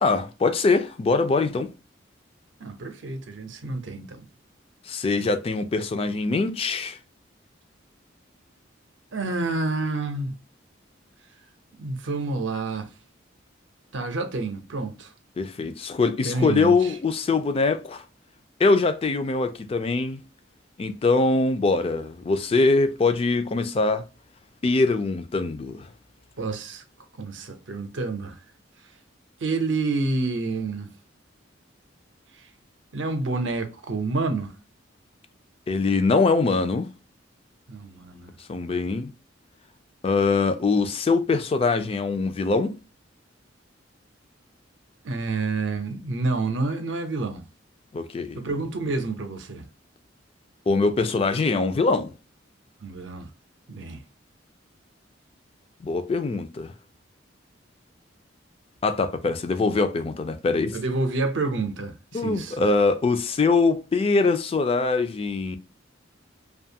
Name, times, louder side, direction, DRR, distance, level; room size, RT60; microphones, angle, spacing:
voice 1, 0.0-1.7 4.9-7.0 15.4-18.0 18.6-20.2 20.8-24.0 24.6-25.9 35.7-36.9 38.5-39.1 40.0-42.7 47.9-48.4 50.7-52.1 55.8-56.7 58.8-60.8 62.1-65.6, left 3 dB, 30° left, 0.3 m, -23 dB
voice 2, 2.6-4.3 9.1-10.4 11.8-12.9 13.9-15.1 16.2-17.0 26.4-26.8 27.2-28.4 29.4-30.9 32.4-32.5 32.9-34.5 37.7-38.3 45.0-47.4 48.3-49.7 52.8-53.3 53.7-54.0 60.7-62.7, right 3 dB, 70° right, 0.6 m, -28 dB
2.5 x 2.3 x 2.7 m
head